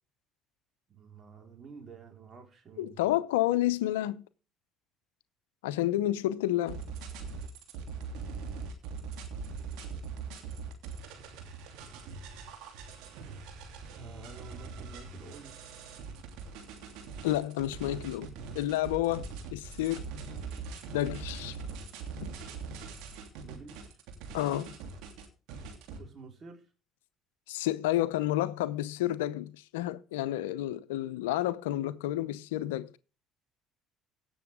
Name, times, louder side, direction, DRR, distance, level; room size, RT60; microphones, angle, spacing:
voice 1, 0.9-3.0 13.9-15.6 23.4-24.0 25.9-26.6, right 5 dB, 45° right, 4.3 m, -50 dB
voice 2, 2.8-4.2 5.6-6.8 17.2-20.0 20.9-21.6 22.2-22.3 24.3-24.7 27.5-33.0, left 14 dB, 90° left, 0.6 m, -30 dB
sound 1, 6.7-26.0, right 5 dB, 75° right, 3.1 m, -42 dB
17.0 x 7.0 x 3.6 m
supercardioid pair, 70°, 0 cm